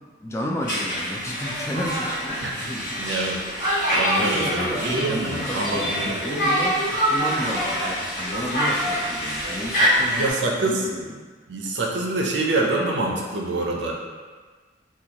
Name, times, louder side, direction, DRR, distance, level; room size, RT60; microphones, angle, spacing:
voice 1, 0.2-3.1 4.2-11.2, left 1 dB, 15° left, -2 dB, 0.4 m, -32 dB
Conversation, 0.6-10.3, equal, 50° left, 1.4 m, -25 dB
voice 2, 3.0-3.4 3.9-6.2 10.1-10.9 11.5-13.9, right 2 dB, 80° right, -1 dB, 0.6 m, -25 dB
4.2 x 2.4 x 2.8 m, 1.4 s
head